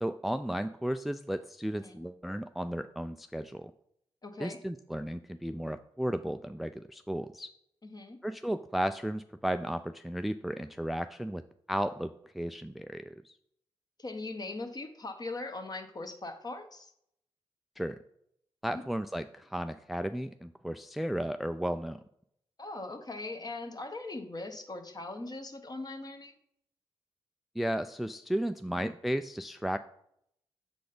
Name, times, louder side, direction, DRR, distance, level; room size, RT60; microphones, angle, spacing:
voice 1, 0.0-3.7 4.4-7.5 8.2-11.4 11.7-13.3 17.8-18.0 18.6-22.0 27.6-29.8, equal, ahead, 10 dB, 0.3 m, -34 dB
voice 2, 1.7-2.1 4.2-4.6 7.8-8.2 14.0-16.9 18.7-18.8 22.6-26.3, left 2 dB, 35° left, 6 dB, 1.1 m, -40 dB
6.8 x 4.0 x 5.0 m, 0.72 s
supercardioid pair, 50°, 11 cm